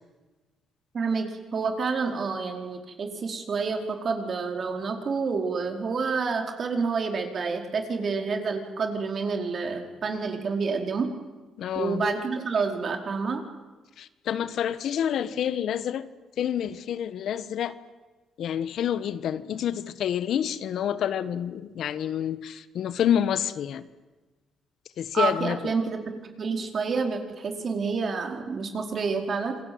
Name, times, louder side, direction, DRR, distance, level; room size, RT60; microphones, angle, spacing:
voice 1, 0.9-11.1 11.7-13.4 25.1-26.0 26.4-29.6, right 4 dB, 50° right, 4 dB, 4.7 m, -28 dB
voice 2, 11.6-12.1 14.0-16.1 16.4-17.7 18.4-23.9 25.0-25.7, left 9 dB, 70° left, 13 dB, 1.4 m, -28 dB
27.0 x 21.0 x 9.6 m, 1.2 s
cardioid pair, 90°, 0 cm